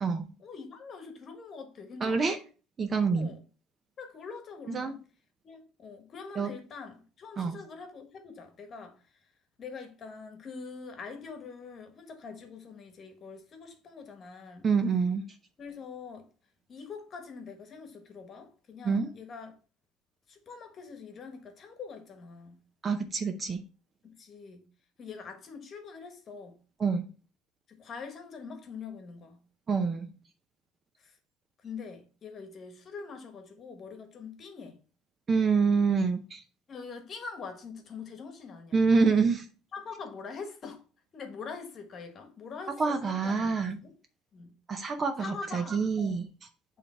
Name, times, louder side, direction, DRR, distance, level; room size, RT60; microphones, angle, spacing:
voice 1, 0.4-2.4 3.1-3.4 4.0-5.0 5.4-9.1 9.6-14.7 15.6-16.3 16.7-19.5 20.3-22.6 24.0-24.7 25.0-26.6 27.7-29.4 31.0-31.2 31.6-34.8 36.7-38.8 39.7-40.8 41.1-43.9 44.3-44.6 45.2-46.2, left 5 dB, 30° left, 1.3 m, -44 dB
voice 2, 2.0-2.4 2.8-3.3 4.7-4.9 6.4-6.5 7.4-7.6 14.6-15.2 18.8-19.1 22.8-23.6 26.8-27.1 29.7-30.1 35.3-36.4 38.7-39.5 42.8-43.8 44.7-46.3, right 5 dB, 25° right, 0.6 m, -26 dB
8.6 x 3.3 x 4.4 m
cardioid pair, 155°, 0 cm